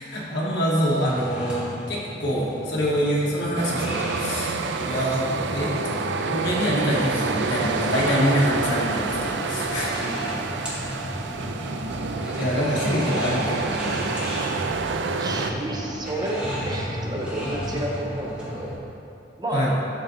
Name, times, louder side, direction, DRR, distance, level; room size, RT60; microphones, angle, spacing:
voice 1, 0.0-1.6 1.9-4.6 4.8-5.7 6.2-9.9 10.6-10.7 12.4-14.1 19.5-19.7, equal, 70° left, -5 dB, 1.3 m, -25 dB
sound 1, 0.7-18.7, equal, 5° right, 1.4 m, -34 dB
sound 2, 3.5-15.5, right 4 dB, 70° right, 0.4 m, -28 dB
sound 3, 6.8-18.7, left 1 dB, 50° left, 1.1 m, -40 dB
voice 2, 10.0-11.3 15.2-18.7 19.4-19.8, right 1 dB, 25° right, -2 dB, 0.7 m, -31 dB
11.5 x 4.0 x 2.7 m, 2.7 s
head